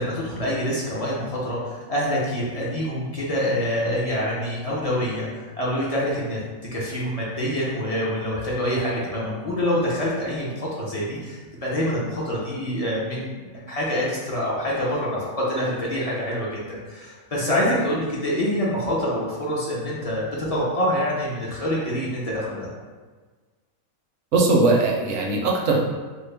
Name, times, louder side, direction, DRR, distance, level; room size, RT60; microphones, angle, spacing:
voice 1, 0.0-5.3 5.6-6.4 6.7-22.7, equal, 45° left, -5 dB, 0.5 m, -26 dB
voice 2, 24.3-25.8, right 3 dB, 65° right, 0 dB, 0.8 m, -20 dB
4.4 x 2.1 x 3.3 m, 1.4 s
omnidirectional pair, 1.5 m